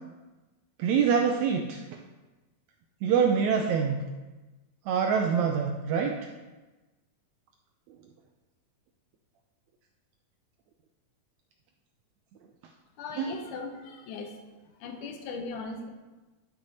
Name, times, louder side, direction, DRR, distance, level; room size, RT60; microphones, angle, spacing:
voice 1, 0.8-2.0 3.0-4.0 4.9-6.2 13.2-13.3, right 6 dB, 85° right, 4 dB, 1.6 m, -25 dB
voice 2, 13.0-14.4 14.8-15.9, left 4 dB, 75° left, 4 dB, 2.4 m, -38 dB
12.5 x 6.2 x 4.2 m, 1.2 s
omnidirectional pair, 3.8 m